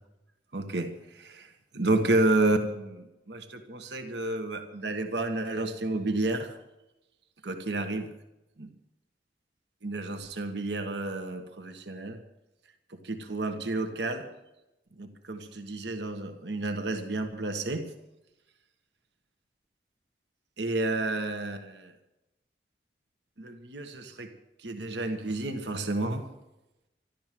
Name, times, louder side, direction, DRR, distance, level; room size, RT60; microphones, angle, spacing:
voice 1, 0.5-6.6 7.4-8.2 8.6-8.7 9.8-12.2 12.9-14.3 14.9-17.9 20.6-21.9 23.4-24.3 24.6-26.3, right 2 dB, 85° right, 6 dB, 1.6 m, -30 dB
13.5 x 12.0 x 7.6 m, 0.93 s
head